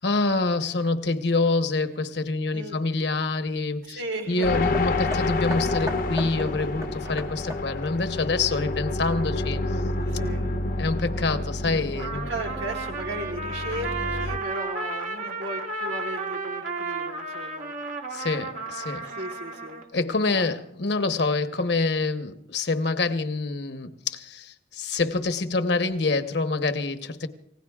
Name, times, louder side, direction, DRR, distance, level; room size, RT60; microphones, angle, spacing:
voice 1, 0.0-4.0 4.3-9.6 10.8-12.3 18.1-19.1 19.9-27.3, left 3 dB, 70° left, 1.0 m, -26 dB
voice 2, 3.8-4.5 10.0-10.5 11.9-17.7 19.0-19.8 20.3-20.5, right 1 dB, 85° right, 1.2 m, -36 dB
sound 1, 4.4-14.4, left 2 dB, 50° left, 0.7 m, -29 dB
Hammer, 4.7-9.2 10.0-10.1, equal, 20° right, 0.8 m, -40 dB
Trumpet, 12.0-19.9, right 3 dB, 45° right, 1.3 m, -33 dB
29.0 x 16.5 x 2.4 m
head